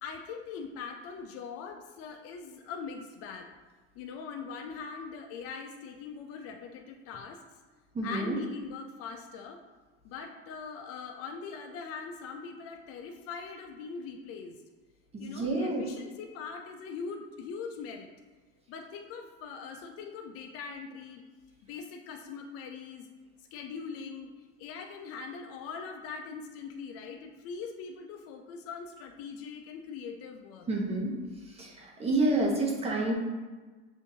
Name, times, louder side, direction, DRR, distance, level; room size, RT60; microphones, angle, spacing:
voice 1, 0.0-3.5 4.0-7.4 8.0-9.6 10.0-14.6 15.2-18.1 18.7-21.2 21.7-23.1 23.5-24.3 24.6-30.7, left 5 dB, 50° left, 4 dB, 0.5 m, -41 dB
voice 2, 7.9-8.4 15.1-15.9 30.7-31.1 31.6-33.1, right 2 dB, 20° right, -1 dB, 0.9 m, -29 dB
6.8 x 2.7 x 2.7 m, 1.3 s
supercardioid pair, 125°, 31 cm